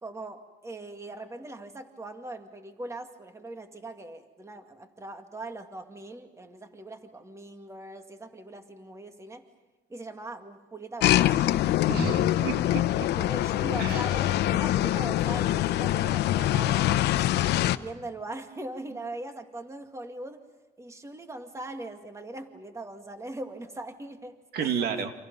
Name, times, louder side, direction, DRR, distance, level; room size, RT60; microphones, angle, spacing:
voice 1, 0.0-9.4 9.9-11.5 13.2-17.3 17.8-20.4 20.8-24.9, right 2 dB, 15° right, 6 dB, 2.2 m, -40 dB
sound 1, 11.0-17.8, left 13 dB, 75° left, 0.9 m, -24 dB
voice 2, 11.9-13.1 13.8-14.1 24.5-25.1, right 7 dB, 70° right, 6 dB, 2.4 m, -31 dB
29.0 x 27.0 x 5.5 m, 1.2 s
cardioid pair, 110°, 17 cm